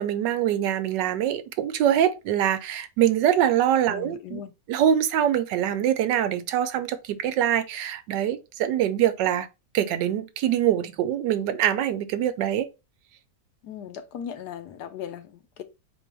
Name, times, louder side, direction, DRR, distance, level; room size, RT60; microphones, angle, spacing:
voice 1, 0.0-4.4 4.7-9.5 9.7-12.7, right 10 dB, 85° right, 1.3 m, -24 dB
voice 2, 3.9-4.5 13.6-15.6, left 9 dB, 70° left, 1.2 m, -38 dB
4.5 x 2.7 x 4.4 m
omnidirectional pair, 1.9 m